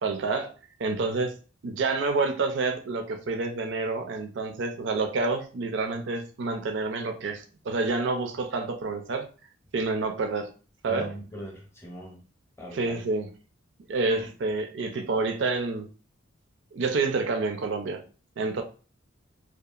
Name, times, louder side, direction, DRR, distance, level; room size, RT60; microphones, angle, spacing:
voice 1, 0.0-0.5 0.8-1.3 1.6-9.3 9.7-10.5 10.8-11.1 12.7-13.3 13.9-15.9 16.7-18.0 18.4-18.6, right 3 dB, 70° right, 5 dB, 0.4 m, -28 dB
voice 2, 10.9-12.2 12.6-13.0, right 1 dB, 15° left, 0 dB, 0.7 m, -40 dB
2.8 x 2.3 x 2.3 m, 0.36 s
head